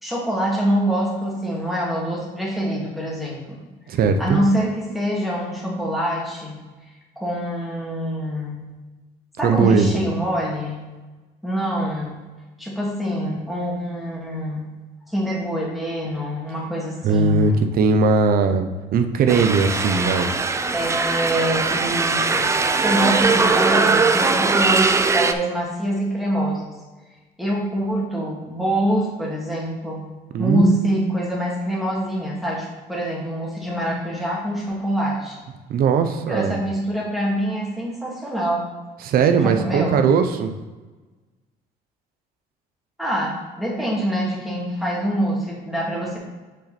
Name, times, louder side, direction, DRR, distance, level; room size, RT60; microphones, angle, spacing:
voice 1, 0.0-3.6 3.9-6.7 7.2-8.6 9.4-10.9 11.4-12.2 12.6-14.7 15.1-17.6 20.7-26.7 27.4-30.0 30.4-35.4 36.3-38.6 39.4-40.0 43.0-46.2, equal, ahead, -5 dB, 2.5 m, -25 dB
voice 2, 3.9-4.4 9.4-10.0 17.0-20.3 30.3-31.3 35.7-36.6 39.0-40.5, right 5 dB, 60° right, 7 dB, 0.8 m, -19 dB
sound 1, 19.3-25.3, right 4 dB, 15° right, 0.4 m, -20 dB
6.2 x 5.5 x 4.3 m, 1.2 s
cardioid pair, 110°, 17 cm